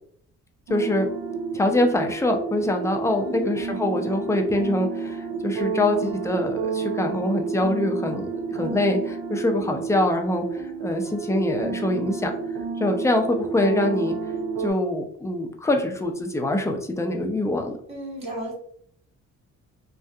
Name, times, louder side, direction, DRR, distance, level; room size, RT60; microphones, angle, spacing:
voice 1, 0.7-1.1 1.5-10.4 10.8-12.3 12.8-14.2 14.6-17.8, left 1 dB, 10° left, 4 dB, 0.4 m, -24 dB
sound 1, 0.7-14.7, right 5 dB, 80° right, 0.5 m, -30 dB
voice 2, 3.2-3.6 17.9-18.5, right 1 dB, 20° right, -6 dB, 1.4 m, -34 dB
2.7 x 2.4 x 2.3 m, 0.63 s
cardioid pair, 90°, 30 cm